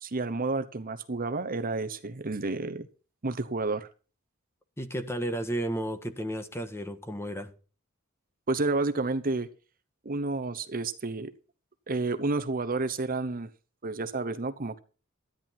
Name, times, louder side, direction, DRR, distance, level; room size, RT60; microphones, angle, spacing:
voice 1, 0.0-2.9 3.2-3.9 8.5-9.5 10.0-11.3 11.9-13.5 13.8-14.8, right 3 dB, 40° right, 1.0 m, -30 dB
voice 2, 4.8-7.5, right 1 dB, 10° left, 1.5 m, -33 dB
13.5 x 10.5 x 4.4 m
head